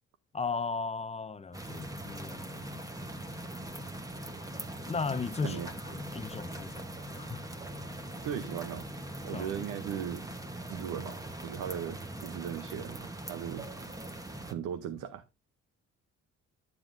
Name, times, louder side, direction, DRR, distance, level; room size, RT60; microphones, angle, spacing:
voice 1, 0.3-2.9 4.8-6.9 7.2-7.4 9.3-9.5, left 4 dB, 20° left, 0.6 m, -36 dB
sound 1, 1.5-14.5, right 1 dB, 10° right, 1.0 m, -41 dB
voice 2, 8.2-8.9 9.2-10.3 10.7-11.2 11.4-13.7 14.5-15.2, right 9 dB, 90° right, 0.7 m, -37 dB
9.7 x 7.0 x 2.5 m
cardioid pair, 90°, 30 cm